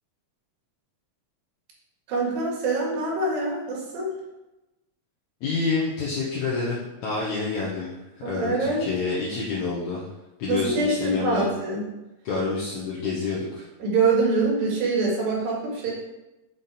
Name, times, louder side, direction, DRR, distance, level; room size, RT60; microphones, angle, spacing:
voice 1, 2.1-4.1 8.2-8.8 10.5-11.8 13.8-15.9, right 3 dB, 85° right, -2 dB, 3.6 m, -24 dB
voice 2, 5.4-7.9 8.2-10.1 10.4-11.5 12.2-13.6, left 4 dB, 65° left, -6 dB, 2.3 m, -28 dB
7.1 x 5.8 x 4.2 m, 1.0 s
omnidirectional pair, 4.0 m